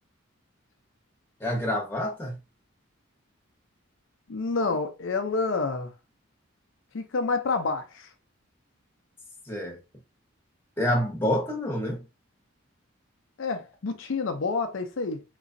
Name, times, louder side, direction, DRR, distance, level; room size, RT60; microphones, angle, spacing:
voice 1, 1.4-2.4 9.5-9.8 10.8-12.0, left 1 dB, 10° left, 0.9 m, -27 dB
voice 2, 4.3-5.9 6.9-8.1 13.4-15.2, left 4 dB, 65° left, 0.5 m, -28 dB
3.9 x 3.0 x 2.6 m
head